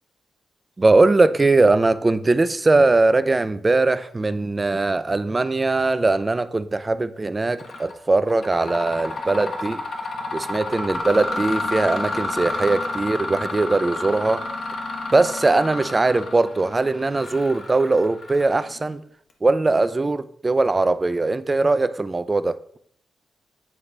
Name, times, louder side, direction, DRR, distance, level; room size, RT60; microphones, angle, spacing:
voice 1, 0.8-9.8 10.3-14.5 15.1-19.0 19.4-22.6, right 3 dB, 25° right, 0.4 m, -20 dB
Mechanisms, 7.6-7.9 8.3-18.8, left 2 dB, 60° left, 1.1 m, -30 dB
8.5 x 3.9 x 3.3 m
cardioid pair, 80°, 0 cm